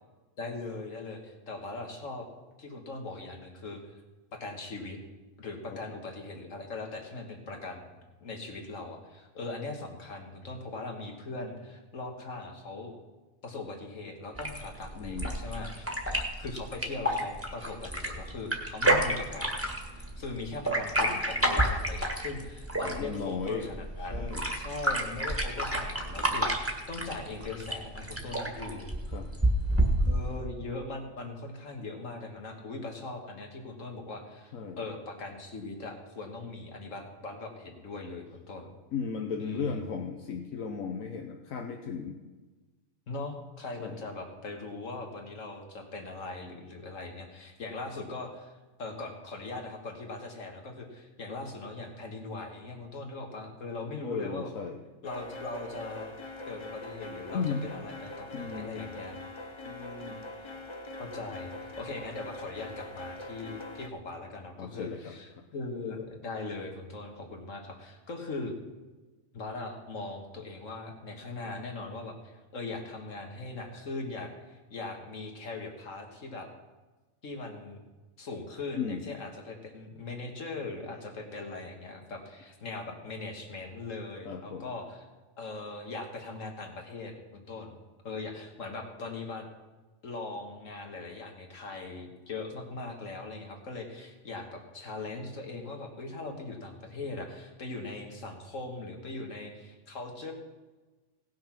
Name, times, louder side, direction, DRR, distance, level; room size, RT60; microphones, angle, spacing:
voice 1, 0.4-2.3 2.6-3.8 4.3-5.0 5.4-12.9 13.4-16.1 16.4-19.6 19.9-28.9 30.0-38.7 39.4-39.8 43.1-48.5 48.8-54.5 55.0-56.1 56.5-59.2 59.6-60.2 61.0-68.5 69.3-76.5 77.2-77.8 78.2-85.0 85.4-87.7 88.0-89.5 90.0-100.3, left 3 dB, 70° left, 3 dB, 2.1 m, -40 dB
sound 1, 14.3-30.4, right 1 dB, 10° right, 1.5 m, -30 dB
voice 2, 14.9-15.4 22.8-23.7 24.1-24.5 29.1-29.3 34.5-34.8 38.9-42.2 43.8-44.0 54.0-54.8 57.3-57.7 58.3-58.9 64.6-65.4 78.8-79.0 84.2-84.7, left 5 dB, 90° left, 3 dB, 1.3 m, -35 dB
sound 2, 55.0-63.9, left 1 dB, 30° left, 0.6 m, -43 dB
17.5 x 6.4 x 6.0 m, 1.2 s
omnidirectional pair, 1.4 m